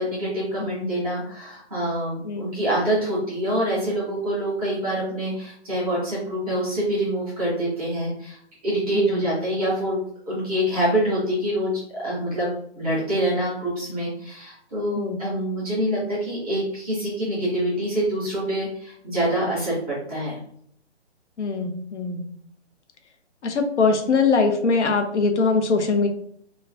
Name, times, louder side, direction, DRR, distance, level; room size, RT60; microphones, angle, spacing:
voice 1, 0.0-10.0 10.3-20.4, right 1 dB, 10° left, -8 dB, 0.6 m, -26 dB
voice 2, 8.9-9.2 14.9-15.2 21.4-22.2 23.4-26.1, left 4 dB, 80° left, 5 dB, 0.6 m, -22 dB
3.1 x 2.1 x 2.4 m, 0.66 s
hypercardioid pair, 175°, 35 cm